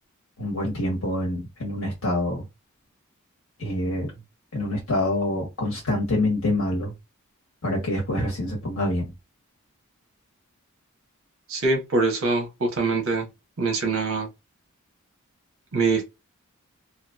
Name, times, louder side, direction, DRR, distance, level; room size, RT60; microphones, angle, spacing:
voice 1, 0.4-2.4 3.6-4.1 4.5-6.9 7.6-9.1, left 1 dB, 85° left, 1.0 m, -26 dB
voice 2, 11.5-13.3 13.6-14.3 15.7-16.0, right 3 dB, 70° right, 0.9 m, -23 dB
2.8 x 2.4 x 2.3 m
head